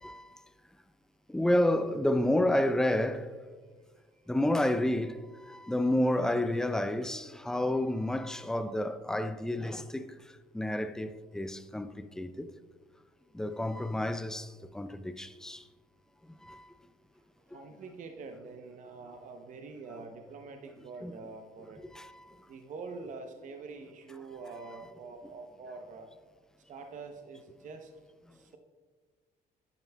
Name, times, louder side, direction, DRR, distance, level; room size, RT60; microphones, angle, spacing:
voice 1, 1.3-3.3 4.3-10.2 10.5-12.5 13.3-15.6 16.4-16.7 21.0-21.1 21.9-22.4, left 1 dB, 5° left, 0.4 m, -30 dB
voice 2, 17.5-21.8 22.5-26.1 26.7-27.9 28.3-28.6, right 4 dB, 50° right, 0.7 m, -45 dB
11.5 x 9.0 x 2.3 m
cardioid pair, 110°, 17 cm